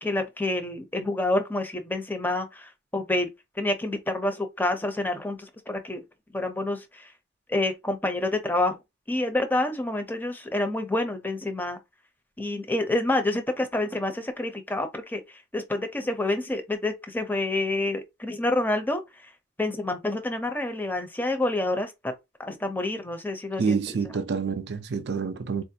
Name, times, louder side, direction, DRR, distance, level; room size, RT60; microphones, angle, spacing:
voice 1, 0.0-3.3 3.6-6.0 6.3-7.1 7.5-8.8 9.1-11.8 12.4-15.2 15.5-19.0 19.6-22.1 22.4-23.8, left 2 dB, 10° left, 0.5 m, -28 dB
voice 2, 23.6-25.6, right 5 dB, 60° right, 0.4 m, -27 dB
4.0 x 2.4 x 2.7 m
head